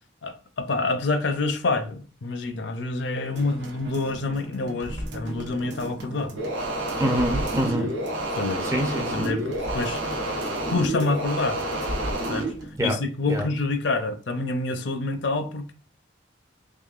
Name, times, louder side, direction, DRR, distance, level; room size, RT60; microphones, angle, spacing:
voice 1, 0.2-6.3 7.8-7.9 8.3-8.7 9.1-10.0 10.7-11.6 12.3-12.5 12.8-15.7, left 3 dB, 65° left, 0.5 m, -27 dB
sound 1, 3.4-12.8 13.1-13.2, right 1 dB, 60° right, 0.7 m, -38 dB
sound 2, 6.4-12.5, right 1 dB, 90° right, 0.9 m, -29 dB
voice 2, 7.0-7.9 8.6-9.3 12.8-13.0 13.3-13.5, right 1 dB, 15° right, 0.5 m, -26 dB
3.7 x 3.3 x 2.4 m
head